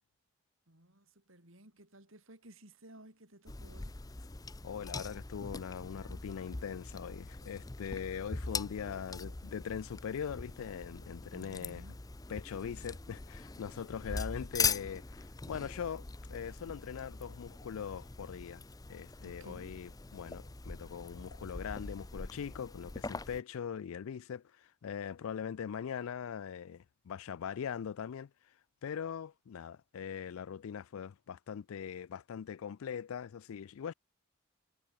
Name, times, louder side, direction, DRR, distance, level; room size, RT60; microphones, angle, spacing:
voice 1, 0.7-4.0 11.3-12.0 19.2-19.8, right 1 dB, 65° right, 5.7 m, -56 dB
sound 1, 3.5-23.4, left 4 dB, 15° left, 0.6 m, -42 dB
voice 2, 4.6-11.8 12.3-18.6 18.9-28.3 28.8-33.9, left 7 dB, 70° left, 0.4 m, -41 dB
head